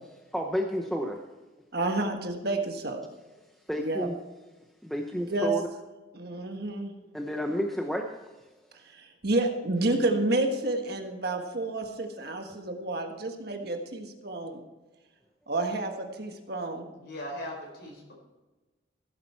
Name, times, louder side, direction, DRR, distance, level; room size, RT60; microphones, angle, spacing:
voice 1, 0.3-1.2 3.7-4.2 4.8-5.7 7.1-8.1, equal, ahead, 2 dB, 0.7 m, -30 dB
voice 2, 1.7-3.0 3.8-4.1 5.1-5.5 6.1-6.9 8.9-14.6 15.5-16.9, right 2 dB, 55° right, 4 dB, 1.5 m, -30 dB
voice 3, 17.0-18.1, left 1 dB, 55° left, 0 dB, 4.8 m, -39 dB
15.5 x 8.9 x 4.4 m, 1.2 s
head